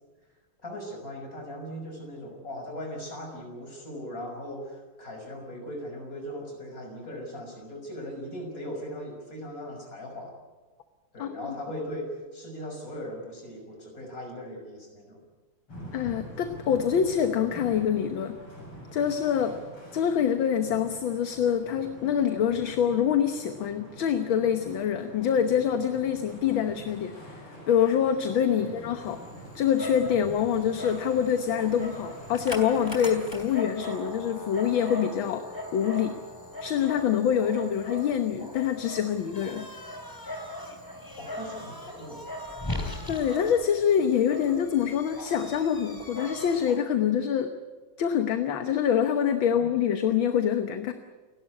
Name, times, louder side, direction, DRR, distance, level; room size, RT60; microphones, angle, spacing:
voice 1, 0.6-10.3 11.1-15.2 28.6-28.8 41.2-42.2 49.5-49.6, equal, 40° left, 2 dB, 6.4 m, -39 dB
sound 1, 15.7-33.5, equal, 80° left, 9.1 m, -45 dB
voice 2, 15.9-18.4 18.9-19.6 19.9-29.2 29.6-35.4 35.7-36.2 36.6-39.7 43.1-47.5 48.0-50.9, left 8 dB, 65° left, 8 dB, 1.8 m, -25 dB
Dog, 29.0-46.8, left 1 dB, 10° left, 3.4 m, -39 dB
29.5 x 12.0 x 9.6 m, 1.4 s
omnidirectional pair, 2.4 m